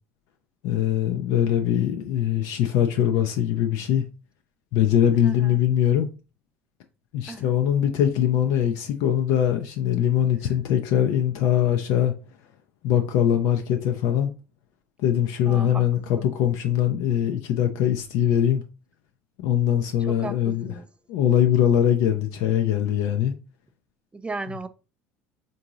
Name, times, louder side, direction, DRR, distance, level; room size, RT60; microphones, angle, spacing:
voice 1, 0.6-4.0 4.7-6.1 7.1-12.1 12.8-14.3 15.0-18.6 19.4-20.7 21.1-23.3, left 10 dB, 70° left, 0.4 m, -22 dB
voice 2, 5.2-5.6 7.3-7.5 10.4-10.5 15.5-15.9 16.2-16.3 20.0-20.9 24.1-24.7, right 3 dB, 15° right, 0.3 m, -36 dB
3.6 x 2.6 x 2.9 m
hypercardioid pair, 80°, 7 cm